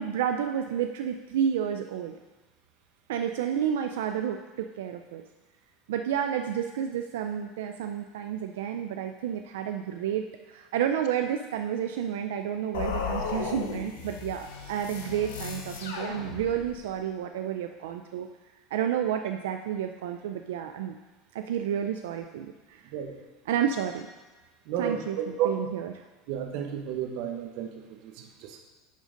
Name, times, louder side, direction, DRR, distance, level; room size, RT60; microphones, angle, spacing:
voice 1, 0.0-2.2 3.1-5.2 5.9-18.3 18.7-21.0 21.3-22.8 23.5-24.1 24.8-25.9, right 9 dB, 85° right, 5 dB, 0.4 m, -30 dB
sound 1, 12.7-16.9, left 5 dB, 90° left, 1.3 m, -35 dB
voice 2, 24.7-25.6 26.3-28.6, right 8 dB, 65° right, 4 dB, 1.2 m, -32 dB
10.0 x 3.9 x 5.0 m, 1.2 s
supercardioid pair, 115°, 0 cm